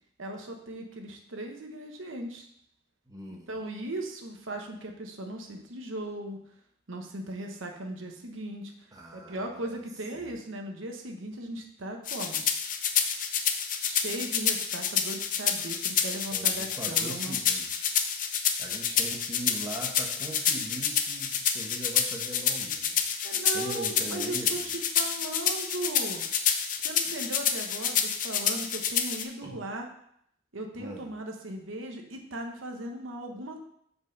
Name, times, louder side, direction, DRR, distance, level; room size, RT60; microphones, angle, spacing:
voice 1, 0.2-2.5 3.5-6.4 6.9-12.4 13.8-17.4 17.9-18.1 23.2-26.2 26.8-29.9 30.5-33.6, right 1 dB, 90° right, 3 dB, 1.1 m, -38 dB
voice 2, 3.1-3.5 8.9-9.8 10.1-10.3 16.3-17.9 18.3-23.0 23.5-24.6 29.4-29.6 30.8-31.1, right 1 dB, 20° right, 0 dB, 1.0 m, -41 dB
sound 1, 12.1-29.2, left 8 dB, 40° left, 0.6 m, -28 dB
5.3 x 5.2 x 6.4 m, 0.71 s
head